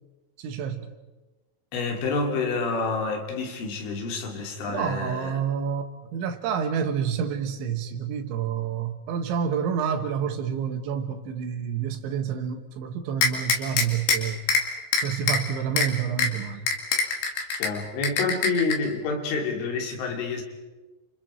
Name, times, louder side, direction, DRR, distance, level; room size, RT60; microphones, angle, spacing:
voice 1, 0.4-0.9 4.7-14.4 15.0-16.7, right 7 dB, 80° right, 3.8 m, -28 dB
voice 2, 1.7-5.4 17.6-20.4, left 4 dB, 85° left, 5.4 m, -28 dB
sound 1, 13.2-14.2 14.5-14.6 14.9-15.4 15.8-15.9 16.2-16.3 16.7-17.7 18.0-18.7, left 4 dB, 65° left, 4.4 m, -22 dB
29.5 x 27.0 x 4.6 m
omnidirectional pair, 5.4 m